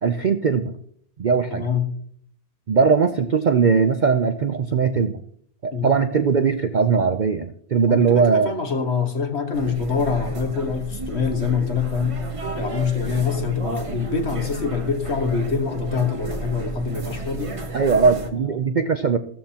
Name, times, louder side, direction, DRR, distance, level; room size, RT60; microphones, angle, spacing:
voice 1, 0.0-0.7 1.2-1.7 2.7-5.2 5.6-8.5 17.7-19.2, right 5 dB, 80° right, 9 dB, 0.4 m, -19 dB
voice 2, 1.5-1.9 5.7-5.9 7.8-12.2 12.6-17.5 18.1-18.3, left 5 dB, 45° left, 5 dB, 1.7 m, -25 dB
sound 1, 9.5-18.3, right 2 dB, 25° right, 1.0 m, -32 dB
15.0 x 13.5 x 2.9 m, 0.64 s
omnidirectional pair, 1.6 m